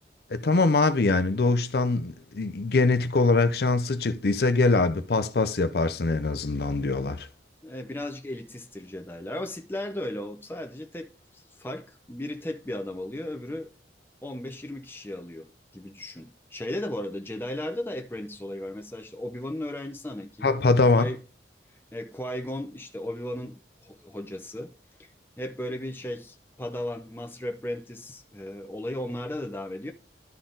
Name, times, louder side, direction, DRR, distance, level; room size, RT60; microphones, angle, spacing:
voice 1, 0.3-7.3 20.4-21.1, left 3 dB, 55° left, 0.6 m, -23 dB
voice 2, 7.6-11.1 11.3-13.7 14.2-20.5 20.9-21.2 21.9-24.7 25.0-25.1 25.4-29.9, left 1 dB, 10° left, 0.5 m, -35 dB
11.5 x 4.1 x 3.8 m
head